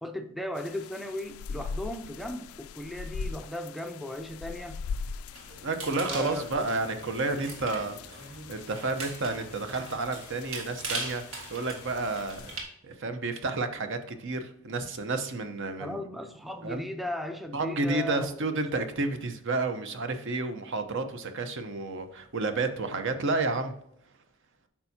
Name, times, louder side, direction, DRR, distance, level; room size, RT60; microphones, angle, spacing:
voice 1, 0.0-4.8 6.1-6.7 15.8-18.4, left 1 dB, ahead, 6 dB, 0.4 m, -36 dB
sound 1, 0.5-12.6, left 5 dB, 75° left, 0.3 m, -42 dB
sound 2, 5.3-12.6, right 3 dB, 80° right, 1.8 m, -41 dB
voice 2, 5.6-12.5 12.8-16.0 16.6-16.8 17.5-23.7, right 3 dB, 60° right, 8 dB, 0.8 m, -31 dB
8.7 x 5.7 x 2.8 m, 0.76 s
head